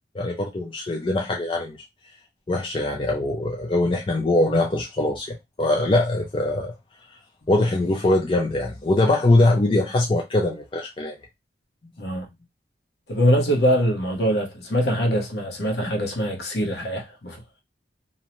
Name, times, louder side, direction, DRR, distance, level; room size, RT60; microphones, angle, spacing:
voice 1, 0.1-1.8 2.5-6.7 7.5-11.2, left 2 dB, 30° left, 0.4 m, -22 dB
voice 2, 13.1-17.6, equal, 60° left, 0.8 m, -23 dB
2.6 x 2.0 x 2.9 m
head